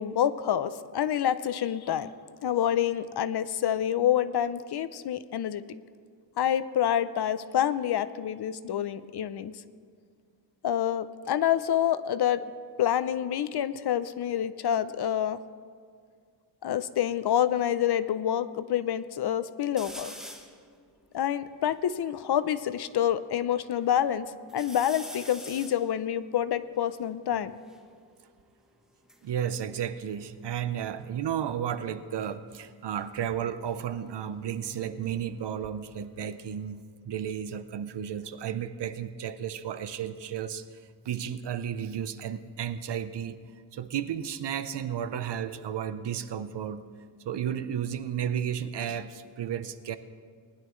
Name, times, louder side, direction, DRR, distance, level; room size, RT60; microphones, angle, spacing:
voice 1, 0.0-2.1 2.4-5.6 6.4-9.5 10.6-12.4 12.8-15.4 16.6-20.1 21.1-27.5, left 10 dB, 65° left, 13 dB, 0.6 m, -27 dB
sound 1, 19.8-20.6 21.2-21.3 21.4-23.0 23.5-24.1 24.5-27.9 28.8-30.7 31.0-31.5 33.0-35.7 36.0-36.8, equal, ahead, 1.1 m, -48 dB
voice 2, 29.2-40.8 41.0-43.4 43.7-46.8 47.2-50.0, right 9 dB, 70° right, 12 dB, 0.7 m, -33 dB
19.5 x 11.0 x 3.1 m, 2.1 s
wide cardioid pair, 130°, 43 cm